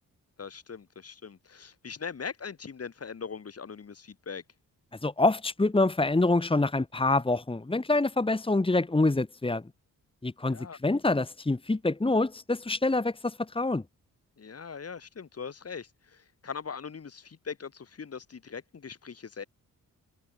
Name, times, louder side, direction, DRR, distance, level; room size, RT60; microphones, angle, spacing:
voice 1, 0.4-4.4 10.4-10.8 14.4-19.4, left 6 dB, 45° left, 4.1 m, -41 dB
voice 2, 5.0-9.6 10.2-13.8, left 2 dB, 15° left, 2.4 m, -26 dB
cardioid pair, 105°, 34 cm